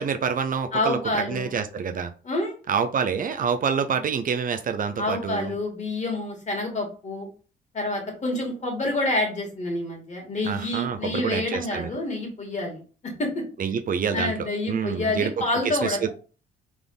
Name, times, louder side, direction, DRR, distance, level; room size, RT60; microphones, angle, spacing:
voice 1, 0.0-1.0 1.3-2.1 2.7-5.5 10.4-11.9 13.6-15.3 15.6-16.1, right 6 dB, 45° right, 8 dB, 0.4 m, -27 dB
voice 2, 0.7-1.5 2.2-2.5 5.0-7.3 7.7-13.4 14.1-16.1, left 2 dB, 35° left, 1 dB, 2.0 m, -28 dB
3.5 x 3.4 x 3.9 m, 0.38 s
cardioid pair, 90°, 20 cm